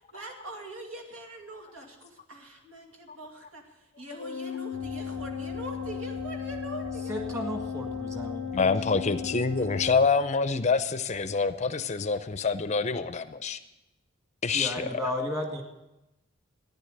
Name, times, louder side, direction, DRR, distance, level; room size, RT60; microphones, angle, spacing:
voice 1, 0.0-7.3 7.6-7.7 9.6-9.7, right 1 dB, 80° right, 3 dB, 2.5 m, -43 dB
Organ, 4.2-10.7, left 8 dB, 90° left, 0.5 m, -36 dB
sound 1, 4.7-10.1, equal, 35° right, 1.6 m, -42 dB
voice 2, 7.1-8.7 14.5-15.6, left 1 dB, 15° right, 2 dB, 2.0 m, -33 dB
voice 3, 8.5-13.6 14.4-14.9, left 4 dB, 35° left, 11 dB, 0.5 m, -26 dB
14.0 x 10.5 x 6.6 m, 0.96 s
head